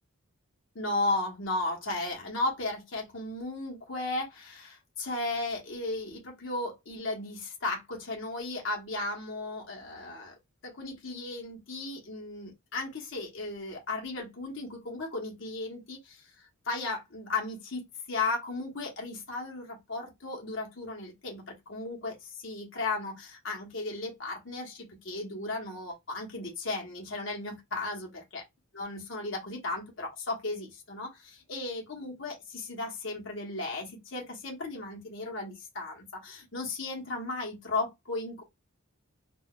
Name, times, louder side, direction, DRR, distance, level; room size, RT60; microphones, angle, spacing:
voice 1, 0.7-10.3 10.6-17.8 18.1-28.4 28.7-38.4, left 2 dB, 55° left, 0.9 m, -35 dB
3.8 x 2.3 x 2.3 m
head